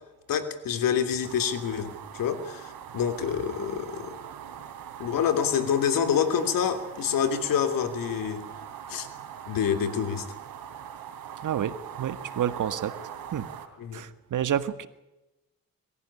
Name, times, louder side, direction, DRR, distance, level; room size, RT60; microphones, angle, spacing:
voice 1, 0.3-4.2 5.0-8.5 8.9-9.1 9.5-10.3 13.8-14.0, left 8 dB, 80° left, 9 dB, 3.1 m, -27 dB
sound 1, 1.2-13.7, right 9 dB, 85° right, 3.1 m, -42 dB
voice 2, 11.4-12.9 13.3-13.5 13.9-14.9, right 9 dB, 65° right, 12 dB, 1.8 m, -29 dB
23.5 x 15.0 x 10.0 m, 1.0 s
cardioid pair, 70°, 34 cm